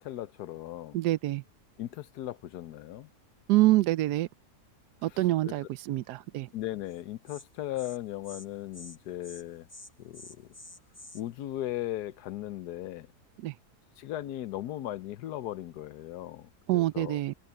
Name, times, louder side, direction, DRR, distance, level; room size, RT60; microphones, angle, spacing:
voice 1, 0.0-1.0 1.8-3.1 5.0-5.5 6.5-9.7 10.0-10.5 11.1-13.1 14.0-17.2, left 14 dB, 80° left, 1.2 m, -37 dB
voice 2, 0.9-1.4 3.5-4.3 5.0-6.5 13.4-13.5 16.7-17.3, right 16 dB, 85° right, 1.2 m, -26 dB
Insect, 6.9-7.0 7.3-7.4 7.8-8.0 8.2-8.5 8.7-9.0 9.2-9.4 9.7-11.2, left 2 dB, 10° left, 1.0 m, -48 dB
omnidirectional pair, 1.7 m